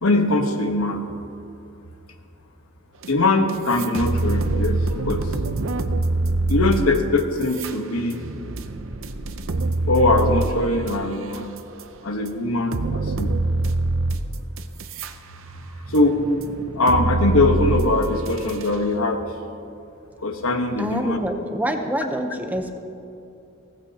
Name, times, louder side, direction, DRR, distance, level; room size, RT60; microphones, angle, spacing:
voice 1, 0.0-1.1 3.1-4.8 5.0-5.2 6.5-8.2 9.9-11.5 12.0-13.3 15.9-16.2 16.7-19.2 20.2-21.2, left 2 dB, 85° left, 5 dB, 1.2 m, -21 dB
sound 1, 3.0-3.1 3.5-11.8 12.3-12.4 12.7-15.1 15.5-18.8, right 2 dB, 65° right, 0.7 m, -25 dB
voice 2, 20.8-22.7, right 1 dB, 10° right, 4 dB, 0.8 m, -26 dB
17.0 x 15.0 x 2.9 m, 2.6 s
head